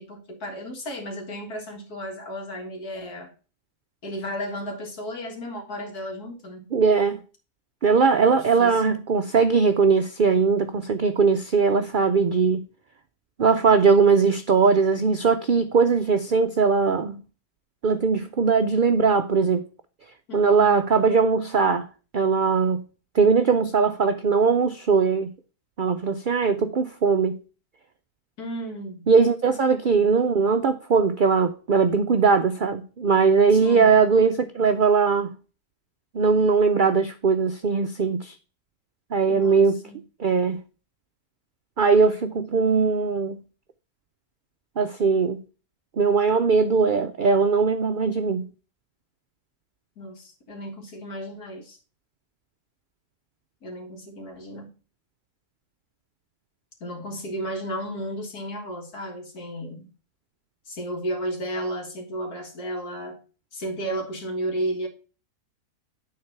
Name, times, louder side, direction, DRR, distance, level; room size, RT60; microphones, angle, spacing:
voice 1, 0.0-3.3 4.0-6.7 8.2-9.0 20.3-20.8 28.4-29.1 33.5-34.0 39.3-40.0 42.4-42.5 50.0-51.8 53.6-54.7 56.8-59.9 60.7-63.2 63.5-64.9, equal, 85° left, 2.3 m, -33 dB
voice 2, 6.7-7.2 7.8-12.6 13.4-17.2 17.8-19.6 20.3-21.9 22.1-22.8 23.1-25.3 25.8-27.4 29.1-35.4 36.1-38.4 39.1-39.8 40.2-40.6 41.8-43.4 44.8-45.4 46.0-48.5, right 5 dB, 90° right, 0.4 m, -20 dB
9.6 x 4.0 x 5.7 m
omnidirectional pair, 1.6 m